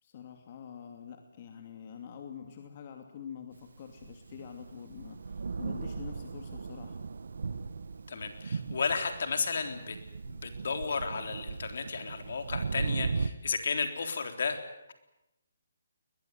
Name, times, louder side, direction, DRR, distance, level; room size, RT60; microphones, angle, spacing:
voice 1, 0.0-7.1, left 7 dB, 40° left, 5 dB, 2.6 m, -46 dB
Thunder, 3.8-13.3, right 4 dB, 70° right, 1.3 m, -37 dB
voice 2, 8.1-10.0 10.2-14.6, left 5 dB, 65° left, 7 dB, 3.8 m, -33 dB
21.5 x 21.0 x 9.6 m, 0.90 s
hypercardioid pair, 155°, 0 cm